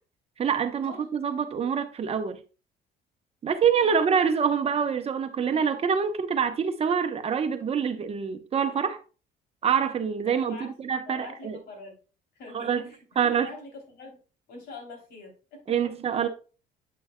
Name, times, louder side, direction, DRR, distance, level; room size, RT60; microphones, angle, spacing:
voice 1, 0.4-2.4 3.4-9.0 9.6-11.6 12.5-12.8 13.2-13.5 15.7-16.3, right 7 dB, 35° right, 0.9 m, -26 dB
voice 2, 10.2-11.9 12.3-13.0 13.2-14.2 14.5-15.9, left 3 dB, 75° left, 3.2 m, -44 dB
8.5 x 6.2 x 2.2 m
cardioid pair, 110°, 17 cm